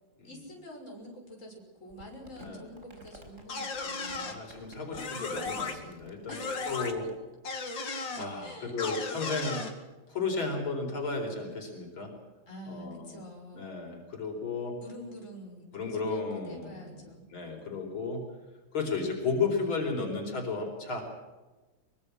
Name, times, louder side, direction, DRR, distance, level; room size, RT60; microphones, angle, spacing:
voice 1, 0.2-4.4 6.3-6.7 8.4-8.7 9.5-9.7 12.5-13.8 14.8-17.2, equal, 35° left, 1 dB, 6.4 m, -47 dB
Crumpling crinkling, 1.9-7.1, right 1 dB, 35° right, 4.8 m, -53 dB
voice 2, 2.4-2.7 4.2-6.4 6.7-7.0 8.1-9.6 10.1-12.1 12.7-13.2 13.5-14.8 15.7-17.0 17.3-18.2 18.7-21.0, left 4 dB, 90° left, 3 dB, 5.2 m, -33 dB
sound 1, 3.5-4.4 4.9-5.7 6.3-6.9 7.4-8.3 8.8-9.7, left 4 dB, 65° left, 3.0 m, -35 dB
23.5 x 23.5 x 6.3 m, 1.2 s
omnidirectional pair, 2.2 m